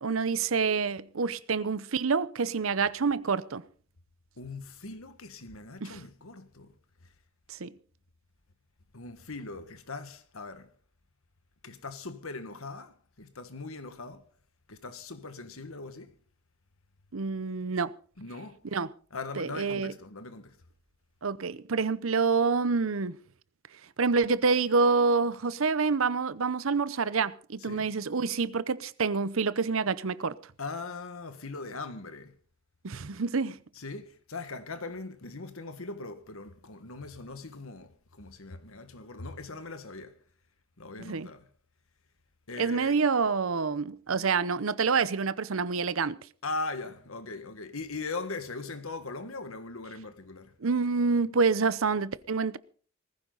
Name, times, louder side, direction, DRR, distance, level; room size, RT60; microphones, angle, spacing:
voice 1, 0.0-3.6 5.8-6.0 7.5-7.7 17.1-17.9 18.7-18.9 19.4-19.9 21.2-23.2 24.0-30.3 32.8-33.6 41.1-41.3 42.6-46.2 50.6-52.6, right 4 dB, 75° right, 0.7 m, -27 dB
voice 2, 4.4-6.7 7.0-7.1 8.9-10.7 11.6-14.3 14.7-16.1 18.2-18.6 19.1-20.6 27.6-27.9 30.6-32.4 33.7-40.2 40.8-41.5 42.5-43.0 46.4-50.5, left 3 dB, 80° left, 1.7 m, -40 dB
19.5 x 15.0 x 3.9 m
head